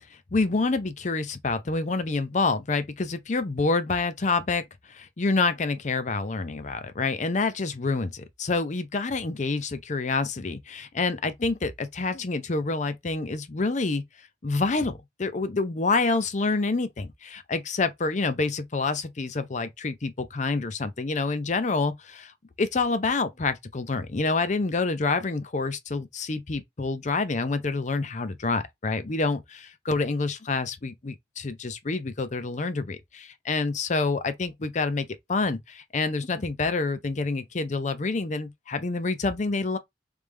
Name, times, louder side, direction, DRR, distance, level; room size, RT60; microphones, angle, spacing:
voice 1, 0.1-4.6 4.9-14.0 14.4-22.3 22.6-39.8, left 3 dB, 45° left, 0.6 m, -27 dB
3.4 x 3.2 x 3.4 m
head